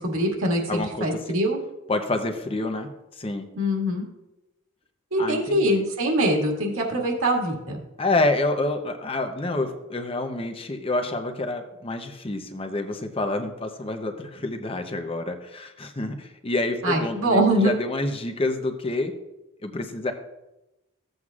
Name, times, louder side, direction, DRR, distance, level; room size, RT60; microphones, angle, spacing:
voice 1, 0.0-1.6 3.6-4.1 5.1-7.8 16.8-17.7, right 1 dB, 75° right, -1 dB, 2.0 m, -23 dB
voice 2, 0.7-1.1 1.9-3.5 5.2-5.8 8.0-19.1 19.6-20.1, left 2 dB, 25° left, 6 dB, 0.7 m, -28 dB
15.0 x 7.9 x 2.4 m, 0.99 s
head